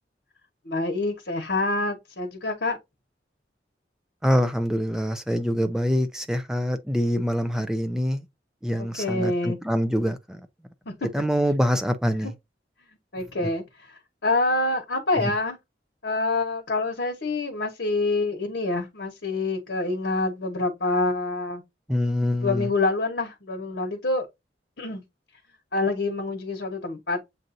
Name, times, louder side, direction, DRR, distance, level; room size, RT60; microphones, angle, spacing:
voice 1, 0.6-2.8 8.8-9.6 10.9-11.0 12.2-12.3 13.1-15.6 16.0-21.6 22.4-24.3 24.8-25.0 25.7-27.2, left 2 dB, 75° left, 1.2 m, -26 dB
voice 2, 4.2-8.2 8.6-10.4 11.1-12.3 15.2-15.3 21.9-22.7, equal, 5° right, 0.6 m, -25 dB
7.6 x 2.6 x 2.6 m
head